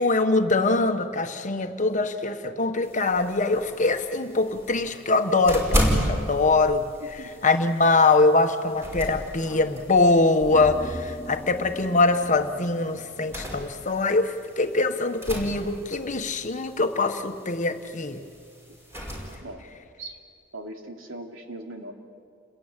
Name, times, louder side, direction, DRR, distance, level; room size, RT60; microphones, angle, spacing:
voice 1, 0.0-18.2, left 3 dB, 40° left, 7 dB, 1.4 m, -23 dB
sound 1, 2.8-19.4, equal, 15° right, 5.3 m, -34 dB
voice 2, 7.0-7.3 19.4-19.6 20.0-20.2 20.5-21.9, right 1 dB, 80° right, 3 dB, 3.1 m, -39 dB
sound 2, 10.4-13.8 14.1-14.2, equal, 15° left, 2.0 m, -40 dB
29.5 x 21.0 x 9.1 m, 2.3 s
head